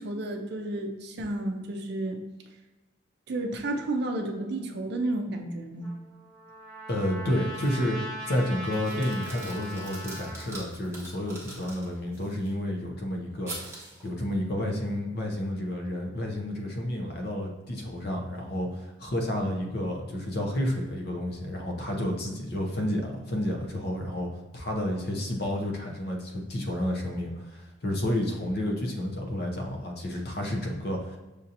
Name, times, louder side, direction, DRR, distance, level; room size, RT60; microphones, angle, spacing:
voice 1, 0.0-2.2 3.3-5.9, right 2 dB, 55° right, 3 dB, 0.5 m, -31 dB
Trumpet, 5.8-10.5, equal, 20° left, 1.4 m, -39 dB
voice 2, 6.9-8.0 8.3-13.5 14.0-24.3 24.5-31.2, left 1 dB, 50° left, 1 dB, 0.7 m, -30 dB
sound 1, 7.5-7.9 8.2-12.5 13.4-14.1, right 2 dB, 15° right, 1.0 m, -44 dB
6.5 x 2.8 x 2.6 m, 1.1 s
head